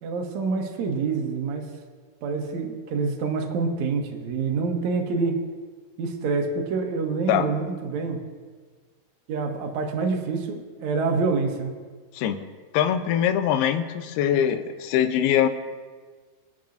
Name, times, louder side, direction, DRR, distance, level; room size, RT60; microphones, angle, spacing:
voice 1, 0.0-1.7 2.2-5.4 6.0-8.2 9.3-11.7, right 4 dB, 70° right, 1 dB, 1.8 m, -27 dB
voice 2, 12.7-15.5, left 9 dB, 80° left, 9 dB, 2.6 m, -22 dB
25.0 x 8.7 x 2.6 m, 1.5 s
omnidirectional pair, 4.7 m